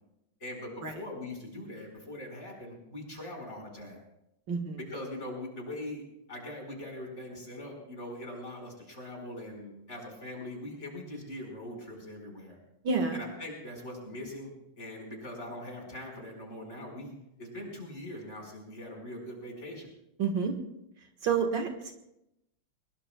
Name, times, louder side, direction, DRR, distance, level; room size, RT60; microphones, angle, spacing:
voice 1, 0.4-4.0 4.9-6.0 6.3-12.6 13.1-19.9, left 1 dB, 30° left, 0 dB, 5.0 m, -42 dB
voice 2, 4.5-4.8 12.8-13.2 20.2-20.5 21.2-21.9, right 5 dB, 60° right, 3 dB, 2.1 m, -29 dB
23.5 x 22.0 x 2.2 m, 0.85 s
omnidirectional pair, 2.2 m